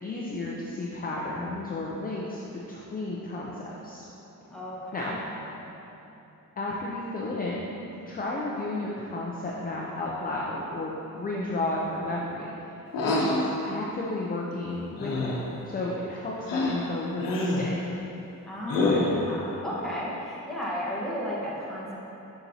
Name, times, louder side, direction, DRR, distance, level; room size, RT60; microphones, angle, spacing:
voice 1, 0.0-2.4 2.7-4.0 4.9-5.2 6.6-7.7 8.1-12.7 13.1-15.4 15.6-18.0, left 2 dB, 25° left, -4 dB, 0.5 m, -33 dB
voice 2, 4.5-5.6 11.3-11.9 18.5-21.9, equal, ahead, -7 dB, 1.2 m, -34 dB
sound 1, 12.9-13.5 15.0-15.5 16.5-16.8 17.2-17.7 18.7-19.2, left 2 dB, 90° left, 0.9 m, -26 dB
6.9 x 5.9 x 2.8 m, 3.0 s
wide cardioid pair, 140°, 32 cm